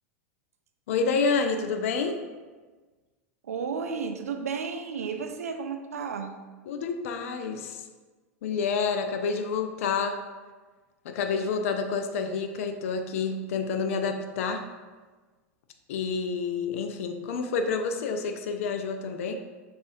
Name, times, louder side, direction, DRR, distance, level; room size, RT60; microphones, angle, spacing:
voice 1, 0.9-2.2 6.7-7.9 8.4-10.2 11.0-14.6 15.9-19.3, left 5 dB, 70° left, 6 dB, 0.4 m, -28 dB
voice 2, 3.4-6.4, right 5 dB, 85° right, 7 dB, 0.4 m, -33 dB
6.9 x 2.4 x 2.7 m, 1.3 s
hypercardioid pair, 95°, 8 cm